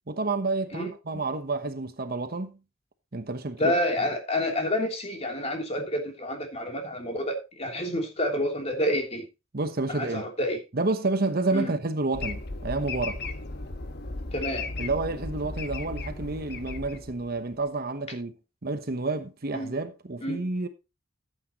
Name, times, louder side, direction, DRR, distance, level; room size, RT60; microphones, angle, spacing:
voice 1, 0.1-2.6 3.1-3.7 9.5-10.3 10.7-13.2 14.8-18.3 18.6-20.7, right 3 dB, 50° right, 1.0 m, -29 dB
voice 2, 3.6-9.2 9.9-10.6 11.5-11.7 14.3-14.7 19.5-19.7 20.2-20.4, left 1 dB, 30° left, 3.1 m, -28 dB
sound 1, 12.1-17.5, left 3 dB, 55° left, 1.3 m, -36 dB
13.5 x 8.4 x 3.0 m
head